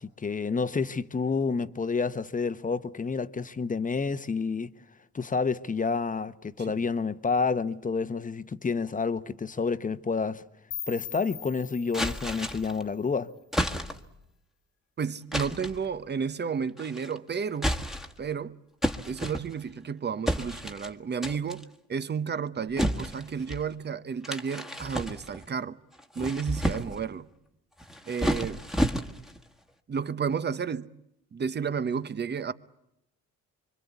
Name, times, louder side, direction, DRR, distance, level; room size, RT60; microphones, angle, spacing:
voice 1, 0.0-4.7 5.1-10.4 10.9-13.3, left 4 dB, 25° left, 1.1 m, -29 dB
sound 1, 10.7-13.6, left 8 dB, 45° left, 1.6 m, -42 dB
sound 2, 11.9-12.8 13.5-14.2 15.3-15.8 16.8-17.2 17.5-18.3 18.8-19.8 20.3-20.9 21.2-21.6 22.8-23.6 24.2-25.5 26.0-27.1 27.8-29.4, equal, ahead, 1.6 m, -31 dB
voice 2, 15.0-17.8 18.2-18.6 19.1-25.8 26.1-27.3 28.1-28.6 29.9-30.9 31.3-32.5, right 6 dB, 35° right, 1.0 m, -32 dB
26.0 x 24.0 x 8.3 m
cardioid pair, 90°, 30 cm